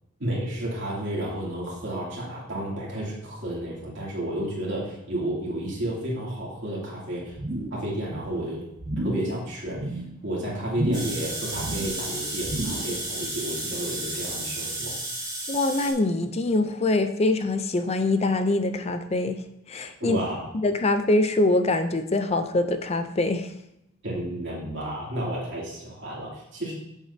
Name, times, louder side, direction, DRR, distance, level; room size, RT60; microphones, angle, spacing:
voice 1, 0.2-7.4 7.7-8.6 9.0-15.0 20.0-20.4 24.0-26.7, right 1 dB, 60° right, -6 dB, 2.7 m, -31 dB
sound 1, 7.3-8.4 8.8-9.3 9.7-10.1 10.7-11.2 11.5-12.0 12.4-13.0 13.3-13.4, right 1 dB, 40° right, 1.4 m, -31 dB
sound 2, 10.9-15.9, right 2 dB, 20° right, 3.0 m, -33 dB
voice 2, 15.5-19.4 19.7-20.2 20.6-23.5, left 2 dB, 30° left, 8 dB, 0.5 m, -24 dB
8.2 x 7.4 x 2.8 m, 0.84 s
head